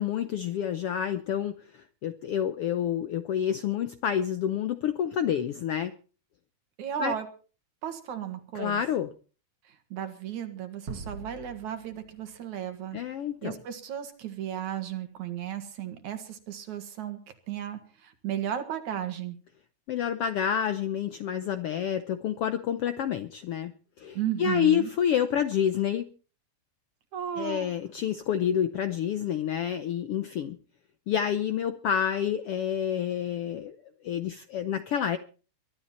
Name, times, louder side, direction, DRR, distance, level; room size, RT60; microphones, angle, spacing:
voice 1, 0.0-5.9 7.0-7.2 8.5-9.1 12.9-13.6 19.9-23.7 24.0-26.1 27.4-30.6 31.1-33.8 34.0-35.2, left 9 dB, 75° left, 10 dB, 1.4 m, -28 dB
voice 2, 6.8-7.3 7.8-8.8 9.7-13.0 13.4-17.2 17.5-19.4 24.1-24.9 27.1-27.8, right 10 dB, 65° right, 8 dB, 3.1 m, -34 dB
sound 1, 10.9-13.3, right 3 dB, 45° right, 2.5 m, -43 dB
22.5 x 12.0 x 4.3 m, 0.38 s
omnidirectional pair, 3.6 m